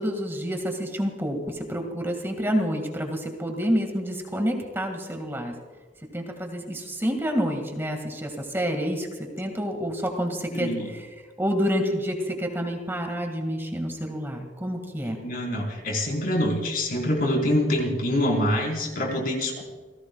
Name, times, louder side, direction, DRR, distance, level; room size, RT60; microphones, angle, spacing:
voice 1, 0.0-5.5 6.1-11.1 11.4-15.2, equal, 15° right, 3 dB, 1.9 m, -28 dB
voice 2, 10.5-10.9 15.2-19.6, left 1 dB, 50° left, 1 dB, 4.3 m, -25 dB
28.5 x 17.0 x 2.3 m, 1.5 s
head